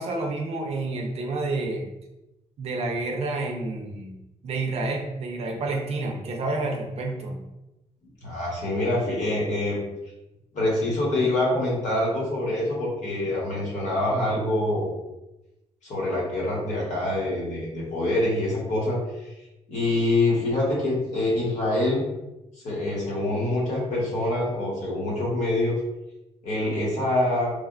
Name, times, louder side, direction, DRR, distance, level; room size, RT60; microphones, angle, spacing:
voice 1, 0.0-1.9 2.6-4.2 4.4-7.4, right 2 dB, 55° right, 2 dB, 0.5 m, -29 dB
voice 2, 8.2-9.8 10.5-14.9 15.8-19.3 19.7-22.0 22.6-25.8 26.4-27.5, left 1 dB, 70° left, -4 dB, 1.1 m, -25 dB
3.2 x 2.1 x 2.4 m, 0.94 s
wide cardioid pair, 155°, 13 cm